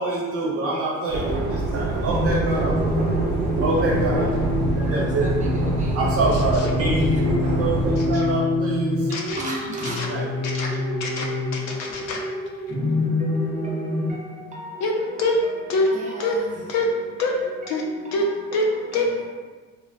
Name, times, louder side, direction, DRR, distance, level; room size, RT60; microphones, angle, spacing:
voice 1, 0.0-3.2 3.6-4.4 4.7-5.3 5.9-10.6, right 2 dB, 50° right, 0.9 m, -27 dB
sound 1, 1.1-8.1, right 3 dB, 80° right, 0.7 m, -25 dB
sound 2, 2.1-14.1, left 2 dB, 25° left, 0.8 m, -26 dB
voice 2, 4.8-6.0 6.9-7.0 9.4-10.1 12.7-19.3, right 1 dB, 25° right, 0.6 m, -39 dB
voice 3, 9.1-9.4 10.0-10.1 10.4-10.7 11.0-12.2 14.8-14.9 15.2-15.4 15.7-15.9 16.2-16.4 16.7-16.9 17.2-17.3 17.7-17.8 18.1-18.2 18.5-18.7 18.9-19.1, left 3 dB, 60° left, 0.6 m, -24 dB
3.4 x 2.1 x 2.4 m
cardioid pair, 130°, 30 cm